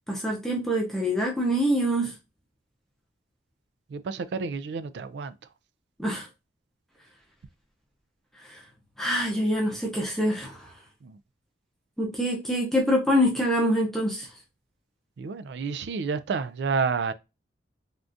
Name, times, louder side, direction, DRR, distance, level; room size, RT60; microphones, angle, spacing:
voice 1, 0.1-2.1 6.0-6.3 8.5-8.6 9.0-10.7 12.0-14.3, equal, ahead, 0.6 m, -25 dB
voice 2, 3.9-5.3 11.0-11.2 15.2-17.1, right 5 dB, 65° right, 0.3 m, -30 dB
3.5 x 2.4 x 2.5 m
head